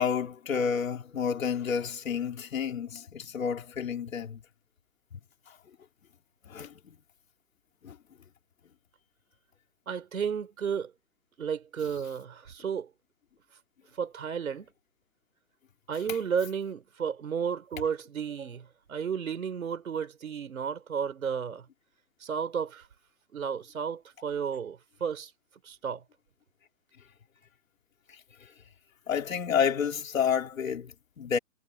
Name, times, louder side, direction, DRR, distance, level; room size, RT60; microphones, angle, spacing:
voice 1, 0.0-4.4 6.5-7.0 7.8-8.0 29.1-31.4, left 7 dB, 70° left, 3.8 m, -30 dB
voice 2, 9.9-10.9 11.4-12.9 14.0-14.7 15.9-21.7 22.2-22.8 23.3-25.3 25.6-26.0, right 7 dB, 80° right, 4.8 m, -33 dB
hypercardioid pair, 160°, 41 cm